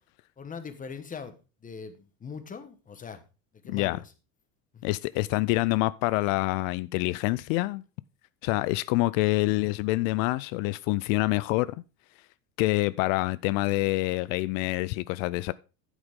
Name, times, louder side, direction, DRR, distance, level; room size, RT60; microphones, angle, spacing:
voice 1, 0.4-1.4 1.6-3.2 3.6-4.0 4.7-4.8, left 6 dB, 20° left, 1.2 m, -41 dB
voice 2, 3.7-4.0 4.8-7.8 8.4-11.7 12.6-15.5, left 20 dB, 80° left, 0.5 m, -26 dB
9.8 x 8.1 x 3.6 m
cardioid pair, 130°, 38 cm